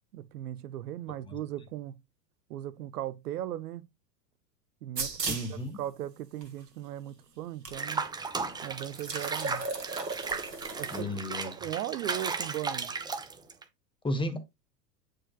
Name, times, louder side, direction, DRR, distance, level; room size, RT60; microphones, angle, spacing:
voice 1, 0.1-2.0 2.5-3.9 4.8-8.0 8.6-9.7 10.8-11.1 11.4-12.9, right 12 dB, 65° right, 0.7 m, -38 dB
sound 1, 5.0-5.6 6.4-6.5 7.7-7.8 8.0-8.1 8.8-11.0, right 4 dB, 85° right, 1.6 m, -36 dB
voice 2, 5.2-5.8 10.9-11.5 14.0-14.4, left 1 dB, 10° left, 1.4 m, -33 dB
Water / Bathtub (filling or washing), 7.7-13.6, right 4 dB, 10° right, 0.7 m, -35 dB
8.8 x 4.7 x 2.3 m
figure-of-eight pair, 90°, 49 cm